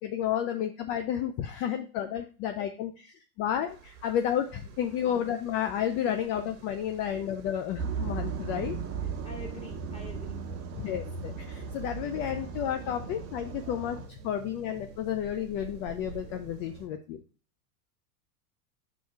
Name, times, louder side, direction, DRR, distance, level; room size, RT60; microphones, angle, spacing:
voice 1, 0.0-8.8 10.8-17.2, left 10 dB, 30° left, 6 dB, 0.3 m, -31 dB
sound 1, 3.7-16.9, right 4 dB, 55° right, 1.4 m, -49 dB
sound 2, 7.8-14.1, right 5 dB, 30° right, 1.2 m, -36 dB
voice 2, 9.2-10.4, left 2 dB, 15° left, 0 dB, 1.8 m, -45 dB
5.6 x 3.8 x 4.5 m, 0.36 s
hypercardioid pair, 100°, 48 cm